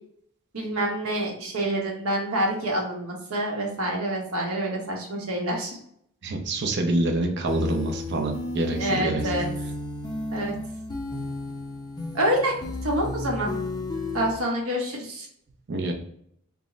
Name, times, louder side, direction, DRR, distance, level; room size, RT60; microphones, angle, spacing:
voice 1, 0.5-5.8 8.8-9.5 10.3-10.5 12.1-12.5 12.8-13.5 14.1-15.3, right 1 dB, 75° right, -1 dB, 1.1 m, -27 dB
voice 2, 6.2-9.3 15.7-15.9, right 2 dB, 55° right, 3 dB, 0.6 m, -26 dB
sound 1, 7.5-14.3, left 2 dB, 20° left, 0.5 m, -33 dB
3.6 x 2.1 x 3.8 m, 0.69 s
head